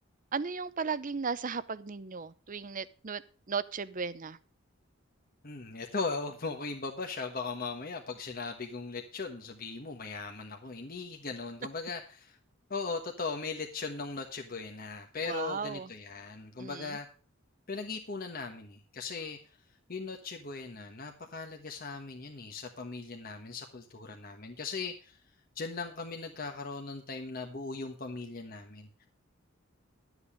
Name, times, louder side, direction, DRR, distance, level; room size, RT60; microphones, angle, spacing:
voice 1, 0.3-3.2 3.5-4.4 15.2-15.9 16.6-17.0, right 5 dB, 40° right, 16 dB, 0.6 m, -35 dB
voice 2, 5.4-12.4 12.7-17.1 17.7-19.4 19.9-25.2 25.5-29.1, left 4 dB, 45° left, 3 dB, 1.3 m, -38 dB
12.0 x 8.0 x 5.0 m, 0.37 s
head